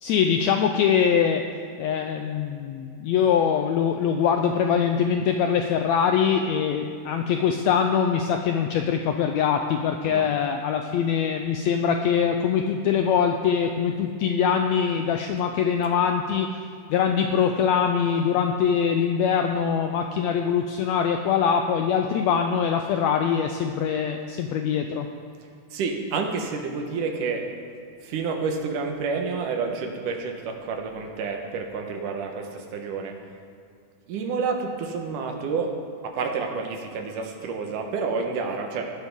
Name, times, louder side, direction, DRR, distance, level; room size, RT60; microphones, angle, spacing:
voice 1, 0.0-1.4 1.8-16.6 16.9-25.1, left 7 dB, 80° left, 5 dB, 1.6 m, -23 dB
voice 2, 25.7-27.5 28.0-33.2 34.1-35.7 36.0-38.9, right 4 dB, 80° right, 3 dB, 2.7 m, -29 dB
17.5 x 11.5 x 3.7 m, 2.4 s
omnidirectional pair, 3.7 m